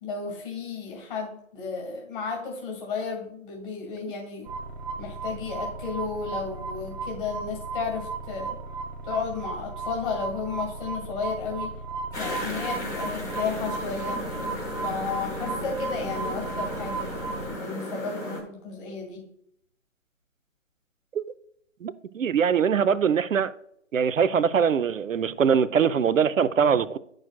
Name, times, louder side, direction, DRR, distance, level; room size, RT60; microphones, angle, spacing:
voice 1, 0.0-4.5 5.0-8.6 9.0-11.7 12.2-14.3 14.8-17.1 17.6-19.3, left 5 dB, 40° left, 2.3 m, -33 dB
sound 1, 4.5-17.6, right 4 dB, 35° right, 1.1 m, -35 dB
sound 2, 12.1-18.4, left 1 dB, 10° left, 0.8 m, -34 dB
voice 2, 21.8-23.5 23.9-27.0, right 7 dB, 80° right, 0.6 m, -22 dB
9.9 x 6.3 x 2.2 m
figure-of-eight pair, 135°, 39 cm